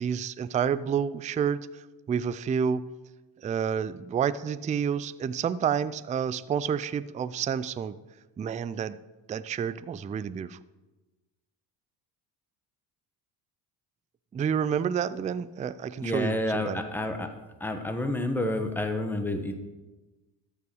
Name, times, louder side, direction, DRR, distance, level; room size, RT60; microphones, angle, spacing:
voice 1, 0.0-1.7 2.1-2.9 3.4-8.0 8.4-9.0 9.3-10.6 14.3-16.8, right 7 dB, 20° right, 15 dB, 0.3 m, -29 dB
voice 2, 16.0-17.3 17.6-19.6, left 1 dB, 5° left, 6 dB, 1.3 m, -29 dB
13.0 x 5.7 x 6.3 m, 1.2 s
supercardioid pair, 75°, 47 cm